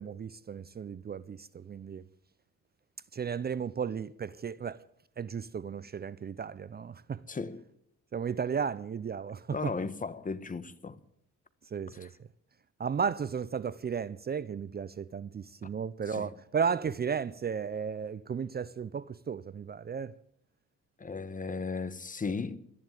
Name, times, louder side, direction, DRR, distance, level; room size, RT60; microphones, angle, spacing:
voice 1, 0.0-2.0 3.1-4.8 5.2-7.2 8.1-9.7 11.7-12.1 12.8-20.2, right 6 dB, 35° right, 0.6 m, -34 dB
voice 2, 7.3-7.6 9.5-11.0 12.0-12.1 16.1-16.3 21.0-22.6, left 4 dB, 25° left, 1.2 m, -36 dB
13.5 x 11.0 x 9.1 m
cardioid pair, 90°, 30 cm